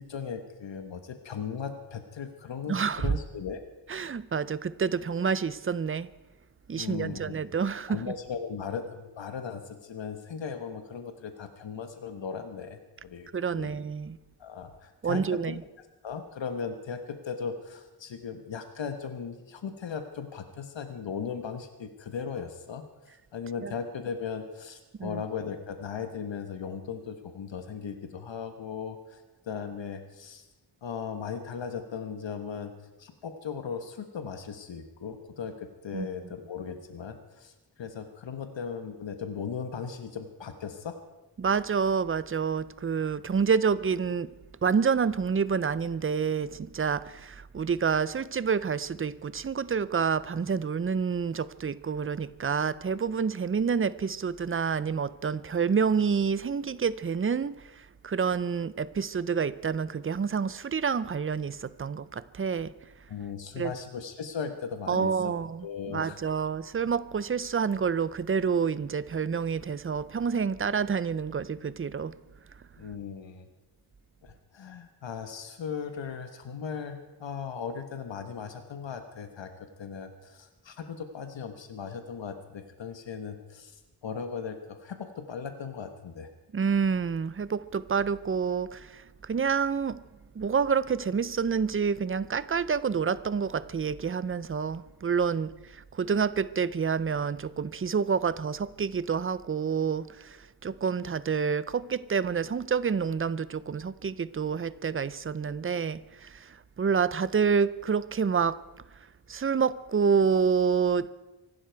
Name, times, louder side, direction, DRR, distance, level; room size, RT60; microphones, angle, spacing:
voice 1, 0.0-3.6 6.7-7.3 7.9-13.7 14.4-15.6 16.0-30.4 30.8-32.7 33.0-37.5 37.8-41.0 63.1-65.3 65.6-66.2 72.8-73.5 74.2-79.5 79.8-83.8 84.0-86.3, left 6 dB, 80° left, 1.2 m, -37 dB
voice 2, 2.7-3.1 3.9-6.1 6.7-8.0 13.3-14.2 15.0-15.6 23.6-23.7 25.0-25.2 35.9-36.1 41.4-44.3 44.6-62.7 63.6-63.7 64.9-72.1 86.5-90.0 90.4-108.6 109.3-111.1, right 6 dB, 30° right, 0.5 m, -28 dB
25.0 x 12.0 x 4.6 m
wide cardioid pair, 145°, 43 cm